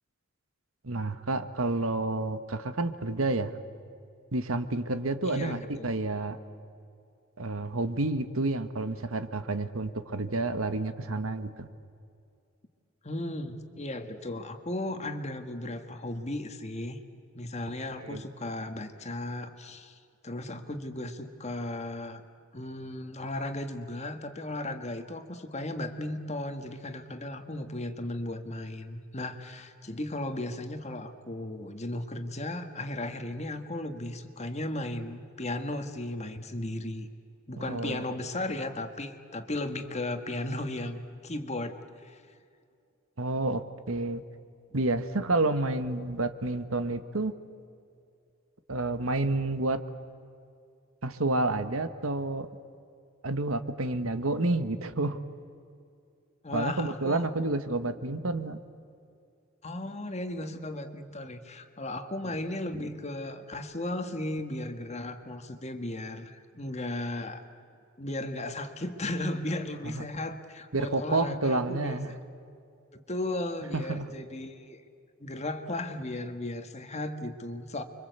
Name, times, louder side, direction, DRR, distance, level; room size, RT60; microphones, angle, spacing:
voice 1, 0.8-3.5 4.3-6.4 7.4-11.7 18.0-18.2 37.6-38.0 43.2-44.2 44.7-47.3 48.7-49.8 51.0-52.5 53.2-55.2 56.5-58.6 69.8-70.1 70.7-72.1 73.7-74.1, right 2 dB, 75° right, 10 dB, 1.4 m, -29 dB
voice 2, 5.2-5.9 13.0-17.0 17.3-20.0 20.2-22.2 22.5-37.1 37.5-41.7 42.0-42.2 56.4-57.3 59.6-67.4 68.0-72.2 72.9-74.8 75.2-77.8, left 1 dB, 30° left, 7 dB, 1.7 m, -35 dB
30.0 x 24.5 x 8.2 m, 2.4 s
head